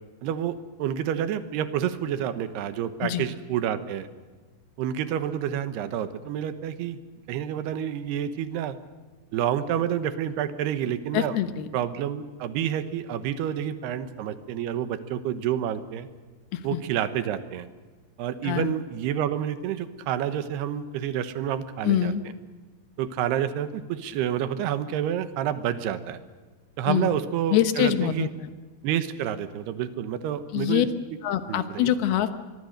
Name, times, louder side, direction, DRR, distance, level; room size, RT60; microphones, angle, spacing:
voice 1, 0.2-4.1 4.8-7.0 7.3-8.8 9.3-11.4 11.7-16.1 16.6-17.7 18.2-22.1 23.0-26.2 26.8-28.3 28.8-30.9 31.5-31.9, right 10 dB, 85° right, 11 dB, 3.2 m, -29 dB
voice 2, 11.1-11.7 16.5-16.8 18.4-18.7 21.8-22.2 26.9-27.1 27.5-28.5 30.5-30.9 31.2-32.4, left 11 dB, 80° left, 10 dB, 3.1 m, -25 dB
25.0 x 22.0 x 6.5 m, 1.4 s
omnidirectional pair, 4.5 m